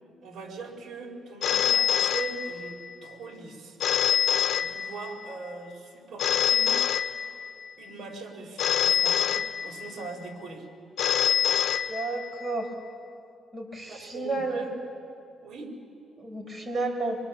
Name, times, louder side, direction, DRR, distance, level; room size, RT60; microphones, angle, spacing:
voice 1, 0.2-3.8 4.6-6.7 7.8-10.7 13.9-14.7 15.4-15.8, right 4 dB, 60° right, 2 dB, 4.5 m, -40 dB
Telephone, 1.4-2.9 3.8-5.3 6.2-7.7 8.6-10.1 11.0-12.5, left 9 dB, 70° left, 0.8 m, -25 dB
voice 2, 11.9-12.7 13.5-14.6 16.2-17.2, right 3 dB, 20° right, 2 dB, 5.3 m, -31 dB
25.5 x 23.5 x 7.1 m, 2.5 s
cardioid pair, 90°, 0 cm